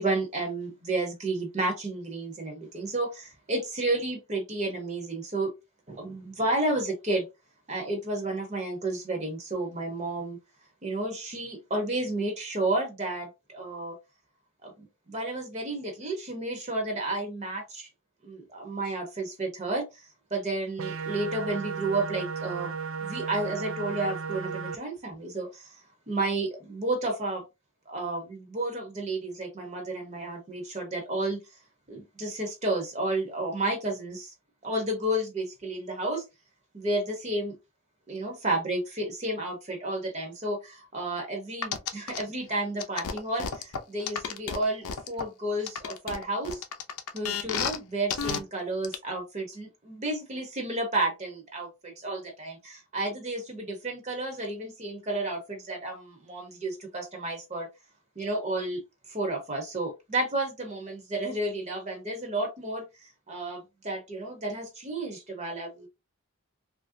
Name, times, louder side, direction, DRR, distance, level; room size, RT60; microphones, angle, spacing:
voice 1, 0.0-5.5 5.9-7.3 7.7-10.4 10.8-14.0 14.6-17.9 18.2-22.7 23.0-25.8 26.1-27.4 27.9-31.4 31.9-34.3 34.6-36.2 36.7-37.6 38.1-46.6 47.1-57.7 58.2-58.8 59.1-65.9, right 2 dB, 30° right, 0.7 m, -31 dB
sound 1, 20.8-24.8, right 5 dB, 65° right, 0.5 m, -34 dB
sound 2, 41.6-42.2 42.8-45.2 45.7-47.8 48.1-48.4 48.8-48.9, left 7 dB, 85° left, 0.6 m, -31 dB
3.1 x 2.5 x 2.5 m
head